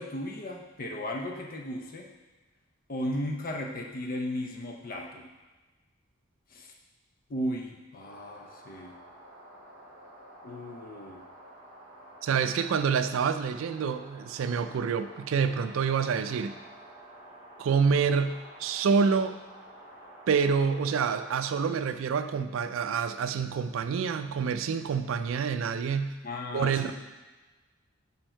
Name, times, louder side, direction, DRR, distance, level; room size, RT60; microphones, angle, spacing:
voice 1, 0.0-2.1 2.9-5.3 6.5-6.7 7.3-9.0 10.4-11.2 26.2-26.9, left 1 dB, 45° left, 2 dB, 0.6 m, -35 dB
sound 1, 8.0-21.4, right 1 dB, 20° right, 1.8 m, -50 dB
voice 2, 12.2-16.5 17.6-19.3 20.3-26.2 26.5-26.9, right 6 dB, 75° right, 10 dB, 0.3 m, -27 dB
5.3 x 4.5 x 4.4 m, 1.2 s
head